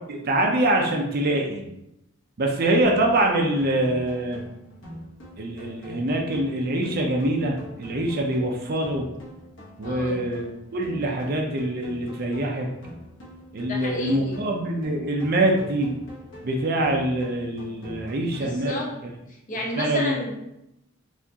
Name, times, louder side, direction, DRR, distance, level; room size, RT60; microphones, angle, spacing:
voice 1, 0.1-1.7 2.4-4.4 5.4-9.1 9.8-12.7 13.5-15.9 16.4-18.7 19.8-20.1, right 1 dB, 50° right, 1 dB, 0.5 m, -24 dB
sound 1, 2.8-18.8, left 1 dB, 65° left, 1.1 m, -44 dB
voice 2, 9.8-10.2 13.6-14.4 18.4-19.0 19.3-20.4, left 1 dB, 40° left, -1 dB, 0.8 m, -31 dB
4.4 x 2.5 x 2.8 m, 0.85 s
head